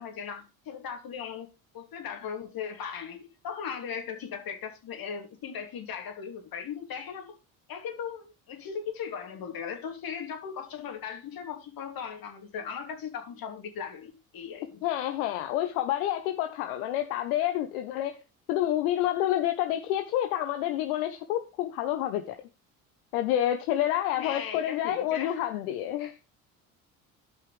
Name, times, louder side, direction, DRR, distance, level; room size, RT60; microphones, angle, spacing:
voice 1, 0.0-1.5 1.7-7.4 7.7-14.8 24.2-25.4, left 7 dB, 55° left, 2.7 m, -38 dB
voice 2, 14.8-18.1 18.5-22.3 23.1-26.2, left 12 dB, 80° left, 0.9 m, -28 dB
14.0 x 5.6 x 3.3 m
hypercardioid pair, 60°, 42 cm